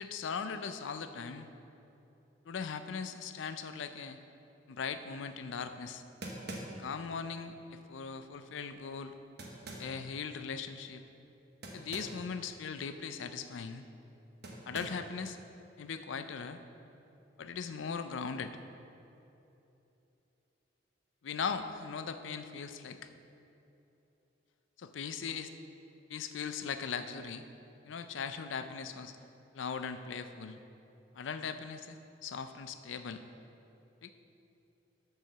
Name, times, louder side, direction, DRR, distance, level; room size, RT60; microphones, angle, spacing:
voice 1, 0.0-1.5 2.5-4.2 4.7-6.0 6.8-9.1 9.8-11.0 11.7-13.8 14.7-15.4 15.8-16.6 17.4-18.5 21.2-23.1 24.8-25.5 26.1-27.5 27.8-29.1 29.5-30.6 31.1-33.2 34.0-34.1, left 6 dB, 80° left, 10 dB, 0.5 m, -39 dB
sound 1, 5.6-5.7 6.2-7.0 9.4-10.0 11.6-12.2 12.5-12.6 14.4-15.1, right 1 dB, 60° right, 1.0 m, -44 dB
7.4 x 4.7 x 6.6 m, 2.9 s
head